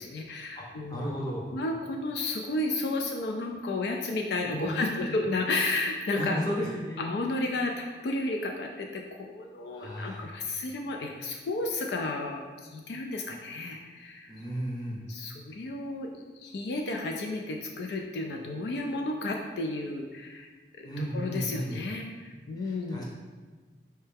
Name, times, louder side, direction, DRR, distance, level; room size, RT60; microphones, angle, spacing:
voice 1, 0.0-1.2 1.5-6.4 7.0-14.3 15.1-20.5 20.7-23.0, left 2 dB, 70° left, 2 dB, 0.4 m, -32 dB
voice 2, 0.5-1.5 4.4-5.2 6.1-7.1 9.7-10.3 14.3-15.0 20.8-21.8 22.6-23.0, equal, 20° left, -4 dB, 0.8 m, -34 dB
4.5 x 3.2 x 3.4 m, 1.4 s
head